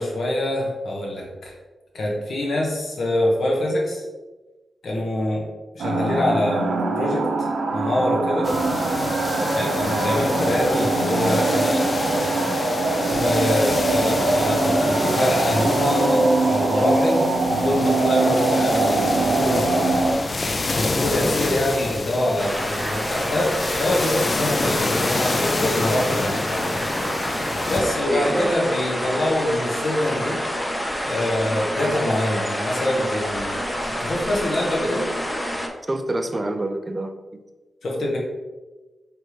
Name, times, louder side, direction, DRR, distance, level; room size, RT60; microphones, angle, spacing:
voice 1, 0.0-1.5 1.9-4.0 4.8-5.4 5.7-7.5 7.7-8.5 9.5-11.9 13.1-17.2 17.5-19.9 20.7-26.7 27.7-30.4 31.0-35.1 37.8-38.2, left 1 dB, 75° left, -2 dB, 1.2 m, -25 dB
sound 1, 5.8-20.1, right 2 dB, 85° right, 0.6 m, -22 dB
sound 2, 8.4-27.8, left 2 dB, 40° left, 0.4 m, -28 dB
voice 2, 21.1-21.5 27.8-28.5 35.9-37.4, right 1 dB, 30° right, 7 dB, 0.5 m, -28 dB
sound 3, 22.4-35.7, equal, 10° left, 0.7 m, -27 dB
4.8 x 3.3 x 3.1 m, 1.2 s
cardioid pair, 60°, 0 cm